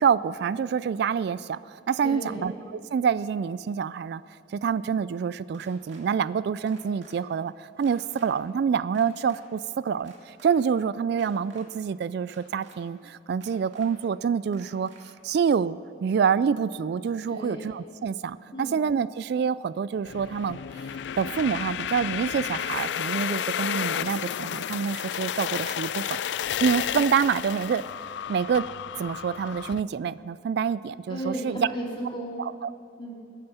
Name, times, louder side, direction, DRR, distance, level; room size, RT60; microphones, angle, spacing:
voice 1, 0.0-2.5 2.9-4.2 4.5-14.9 15.2-20.6 21.2-26.2 26.6-27.8 28.3-28.6 29.0-31.7 32.4-32.7, right 6 dB, 65° right, 17 dB, 0.3 m, -27 dB
voice 2, 2.0-2.6 17.3-17.6 18.5-18.7 31.1-32.5 33.0-33.1, right 1 dB, 30° left, -3 dB, 3.2 m, -34 dB
sound 1, 5.5-6.0 6.7-7.2 7.8-8.3 8.9-9.4 10.0-10.5 11.1-11.6 12.3-12.8 13.4-13.9 14.5-15.0, right 3 dB, 85° right, 2.6 m, -52 dB
sound 2, 20.0-29.8, left 9 dB, 70° left, 0.4 m, -32 dB
21.5 x 9.1 x 5.6 m, 2.7 s
head